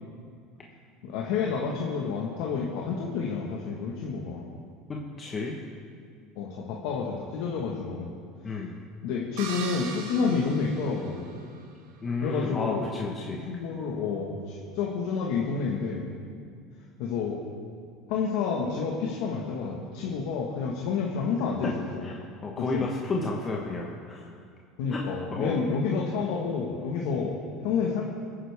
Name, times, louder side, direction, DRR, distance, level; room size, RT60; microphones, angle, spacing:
voice 1, 1.0-4.5 6.4-8.1 9.0-11.3 12.2-12.8 13.5-16.1 17.0-17.4 18.1-22.1 22.7-22.9 24.8-28.0, left 5 dB, 75° left, -2 dB, 1.5 m, -29 dB
voice 2, 4.9-5.6 8.4-8.8 12.0-13.5 22.0-24.3 24.9-25.1 25.3-25.6, left 3 dB, 25° left, -2 dB, 1.3 m, -32 dB
sound 1, 9.4-11.6, right 5 dB, 85° right, 1.8 m, -39 dB
23.0 x 9.5 x 3.6 m, 2.2 s
supercardioid pair, 120°, 0 cm